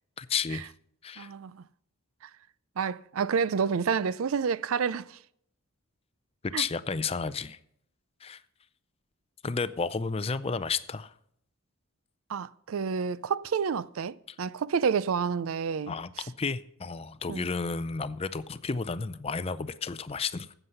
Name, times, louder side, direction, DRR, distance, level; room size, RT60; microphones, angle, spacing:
voice 1, 0.2-0.7 1.0-1.3 6.6-7.6 8.2-8.4 9.4-11.1 15.9-20.5, left 5 dB, 25° left, 0.5 m, -32 dB
voice 2, 1.2-1.6 2.2-2.3 2.8-5.2 6.5-6.7 12.3-16.2 17.3-17.5, right 6 dB, 75° right, 0.4 m, -29 dB
13.5 x 8.1 x 5.6 m
head